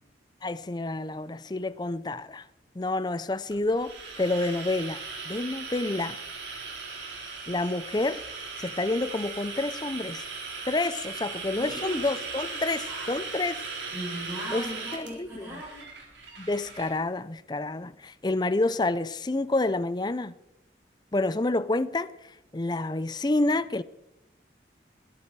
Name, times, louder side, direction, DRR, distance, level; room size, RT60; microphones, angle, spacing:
voice 1, 0.4-2.5 2.8-6.2 7.5-8.2 8.6-10.3 10.7-13.6 14.5-15.5 16.4-20.3 21.1-23.8, left 2 dB, 25° left, 0.5 m, -29 dB
sound 1, 3.5-16.9, right 4 dB, 80° right, 3.9 m, -38 dB
voice 2, 11.6-12.1 12.9-13.1 13.9-15.9, right 1 dB, 15° right, 6.5 m, -38 dB
22.0 x 10.5 x 4.7 m
head